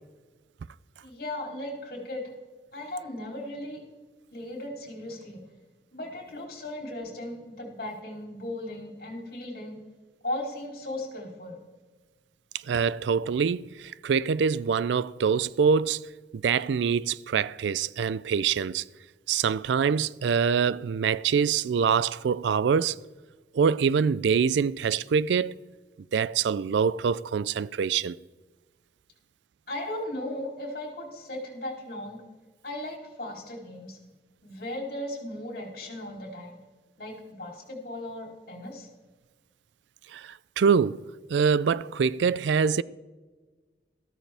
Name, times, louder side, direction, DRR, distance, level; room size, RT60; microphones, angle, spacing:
voice 1, 1.0-2.2 2.7-3.8 4.3-5.4 5.9-9.8 10.2-11.6 29.7-32.2 32.6-34.0 34.4-36.6 37.0-38.9, left 1 dB, 55° left, 3.4 m, -37 dB
voice 2, 12.7-16.1 16.3-18.8 19.3-23.0 23.5-25.6 26.1-28.2 40.1-41.0 41.3-42.8, right 6 dB, 80° right, 0.4 m, -25 dB
14.0 x 13.0 x 3.4 m
head